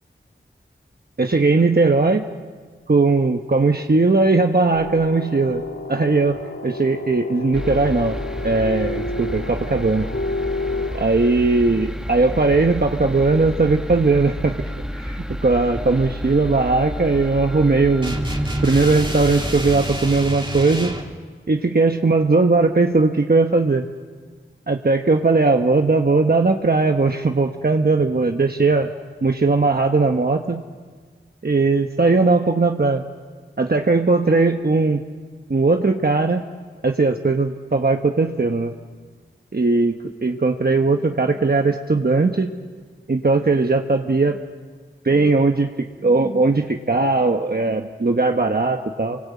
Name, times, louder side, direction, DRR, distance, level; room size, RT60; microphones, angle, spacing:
voice 1, 1.2-2.2 2.9-5.6 5.9-6.4 6.6-8.2 8.4-10.1 10.9-14.5 14.9-18.2 18.6-21.0 21.5-23.8 24.7-28.9 29.2-30.6 31.4-33.0 33.6-35.0 35.5-36.4 36.8-38.7 39.5-39.9 40.2-42.5 43.1-44.4 45.0-45.7 46.0-49.2, right 3 dB, 45° right, 4 dB, 1.2 m, -18 dB
sound 1, 4.7-11.1, left 2 dB, 70° left, 2.1 m, -30 dB
sound 2, 7.5-20.0, equal, 5° right, 1.5 m, -31 dB
sound 3, 18.0-21.1, right 1 dB, 25° right, 3.2 m, -28 dB
29.0 x 24.0 x 8.5 m, 1.5 s
wide cardioid pair, 70°, 21 cm